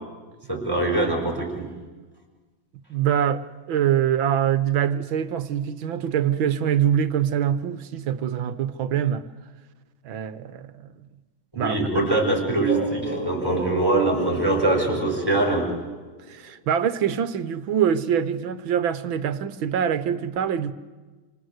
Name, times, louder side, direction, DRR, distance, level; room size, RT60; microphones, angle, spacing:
voice 1, 0.5-1.7 11.5-15.7, right 2 dB, 10° right, 5.5 m, -23 dB
voice 2, 2.9-9.2 10.0-10.7 11.6-11.8 16.3-20.7, right 9 dB, 75° right, 1.8 m, -24 dB
sound 1, 12.7-16.4, left 1 dB, 50° left, 7.5 m, -31 dB
27.0 x 26.0 x 8.1 m
omnidirectional pair, 2.3 m